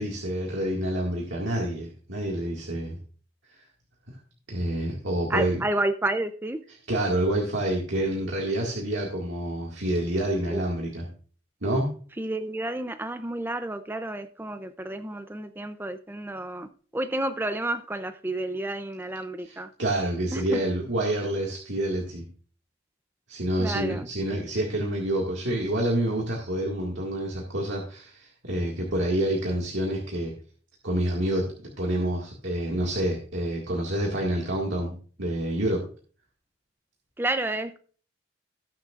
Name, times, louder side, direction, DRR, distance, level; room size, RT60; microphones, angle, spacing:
voice 1, 0.0-3.0 3.5-3.7 4.1-4.2 4.5-5.6 6.9-11.1 11.6-11.9 19.4-22.3 23.3-30.3 30.8-35.8, right 1 dB, 65° right, 2.0 m, -28 dB
voice 2, 5.3-6.6 10.5-10.6 12.2-19.7 20.3-20.6 23.6-24.1 37.2-37.8, right 1 dB, 10° right, 0.5 m, -30 dB
18.5 x 6.5 x 2.5 m
head